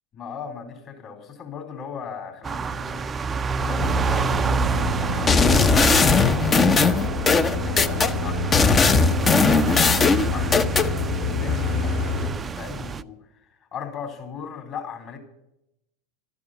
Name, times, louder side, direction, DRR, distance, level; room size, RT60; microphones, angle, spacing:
voice 1, 0.1-3.1 3.6-7.0 7.6-10.0 10.3-15.2, left 6 dB, 40° left, 4 dB, 4.1 m, -38 dB
sound 1, 2.4-13.0, right 5 dB, 20° right, 0.5 m, -29 dB
sound 2, 3.8-12.3, left 3 dB, 70° left, 2.9 m, -27 dB
sound 3, 5.3-8.1 8.5-10.9, left 4 dB, 25° left, 0.8 m, -18 dB
13.0 x 9.7 x 9.1 m, 0.84 s
figure-of-eight pair, 85°, 0 cm